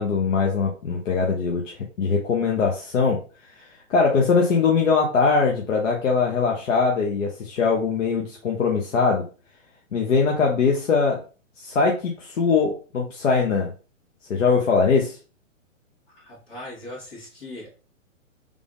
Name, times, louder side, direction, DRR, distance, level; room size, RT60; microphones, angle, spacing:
voice 1, 0.0-3.2 3.9-9.2 9.9-11.2 11.6-13.7 14.3-15.2, left 5 dB, 70° left, -1 dB, 0.9 m, -21 dB
voice 2, 16.1-17.8, left 1 dB, 45° left, -4 dB, 2.0 m, -39 dB
3.5 x 3.4 x 2.5 m, 0.36 s
hypercardioid pair, 170°, 39 cm